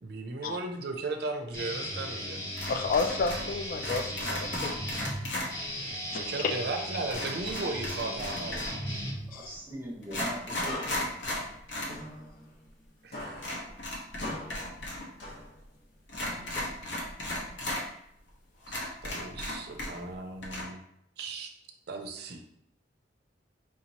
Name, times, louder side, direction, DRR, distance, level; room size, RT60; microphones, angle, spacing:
voice 1, 0.0-2.4 6.1-8.7 13.0-13.6 18.7-20.8 21.2-21.5 21.9-22.4, right 3 dB, 60° right, 5 dB, 0.5 m, -36 dB
Guitar, 1.5-9.6, equal, 20° left, 1.0 m, -37 dB
sound 1, 2.6-3.5 3.8-5.5 7.1-8.9 9.6-9.7 10.0-12.0 12.3-12.4 13.4-15.1 15.3-15.4 16.1-17.8 18.3-18.4 18.7-20.1 20.4-20.6, left 1 dB, 85° left, 1.1 m, -35 dB
voice 2, 2.7-5.0 9.3-9.6, left 4 dB, 50° left, 6 dB, 0.3 m, -31 dB
voice 3, 9.3-11.1, right 1 dB, 10° right, -2 dB, 0.8 m, -40 dB
sound 2, 10.6-12.9 13.1-15.8 16.2-17.8, left 1 dB, 65° left, 1.0 m, -43 dB
4.6 x 2.9 x 2.8 m, 0.76 s
head